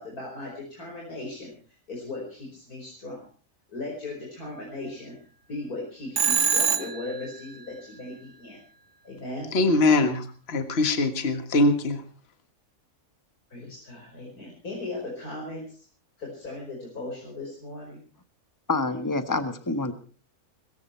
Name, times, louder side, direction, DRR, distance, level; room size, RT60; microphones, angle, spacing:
voice 1, 0.0-1.5 1.9-3.2 3.7-5.2 5.5-8.6 9.0-9.5 13.5-15.8 16.2-18.0, left 2 dB, 80° left, -2 dB, 5.7 m, -37 dB
Telephone, 6.2-7.2, right 6 dB, 55° right, 1.7 m, -23 dB
voice 2, 9.5-12.0, left 2 dB, 45° left, 8 dB, 1.8 m, -22 dB
voice 3, 18.7-19.9, left 3 dB, 15° left, 10 dB, 1.3 m, -27 dB
21.5 x 14.5 x 4.5 m, 0.39 s
omnidirectional pair, 1.6 m